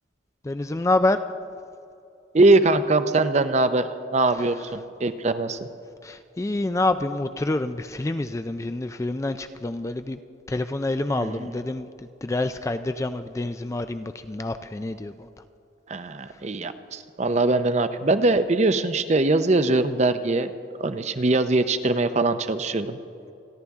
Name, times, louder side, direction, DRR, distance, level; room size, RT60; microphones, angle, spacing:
voice 1, 0.4-1.2 6.0-10.2 10.5-11.9 12.2-15.3, left 2 dB, 15° left, 10 dB, 0.3 m, -27 dB
voice 2, 2.3-5.7 11.1-11.5 15.9-20.5 20.8-23.0, right 2 dB, 35° right, 11 dB, 0.6 m, -22 dB
28.0 x 11.0 x 3.6 m, 2.6 s
head